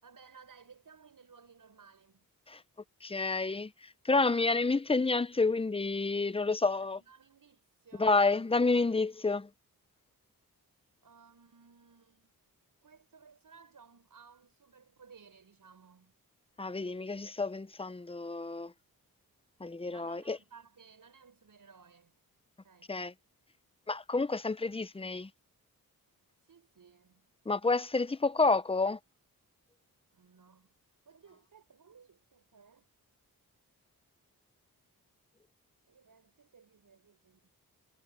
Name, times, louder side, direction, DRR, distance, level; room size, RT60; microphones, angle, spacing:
voice 1, 0.0-2.2 6.7-8.3 11.0-12.3 12.8-16.1 19.9-22.1 22.6-23.0 26.4-27.2 30.1-32.9 35.9-37.5, right 6 dB, 65° right, 6.5 m, -59 dB
voice 2, 3.0-3.7 4.0-7.0 8.0-9.5 16.6-18.7 19.6-20.4 22.9-23.1 23.9-25.3 27.5-29.0, left 3 dB, 15° left, 0.7 m, -29 dB
cardioid pair, 75°, 36 cm